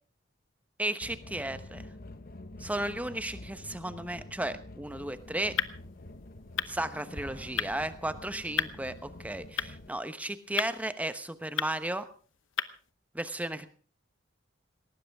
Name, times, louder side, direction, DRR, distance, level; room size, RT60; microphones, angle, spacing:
voice 1, 0.8-1.8 2.6-5.5 6.7-12.1 13.1-13.7, right 1 dB, 10° right, 11 dB, 1.0 m, -34 dB
sound 1, 1.0-9.9, left 2 dB, 50° left, 1.1 m, -47 dB
sound 2, 4.8-12.9, left 9 dB, 75° left, 0.9 m, -38 dB
Explosion, 7.1-9.0, equal, 30° right, 3.3 m, -48 dB
18.5 x 18.5 x 3.6 m, 0.40 s
head